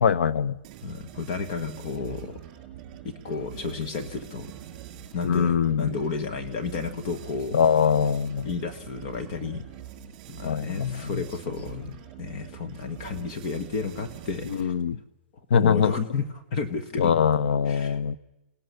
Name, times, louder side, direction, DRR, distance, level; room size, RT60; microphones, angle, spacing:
voice 1, 0.0-0.6 5.2-5.9 7.5-8.5 10.4-11.2 14.4-15.0 15.5-15.9 17.0-18.2, left 7 dB, 75° left, 15 dB, 0.8 m, -22 dB
sound 1, 0.6-14.9, right 11 dB, 30° right, 6.0 m, -44 dB
voice 2, 0.8-2.3 3.2-4.5 5.1-7.6 8.4-9.6 10.3-11.9 12.2-14.7 15.5-16.3 16.5-17.2 17.7-18.0, left 5 dB, 35° left, 9 dB, 1.4 m, -32 dB
30.0 x 18.5 x 6.9 m, 0.99 s
hypercardioid pair, 170°, 6 cm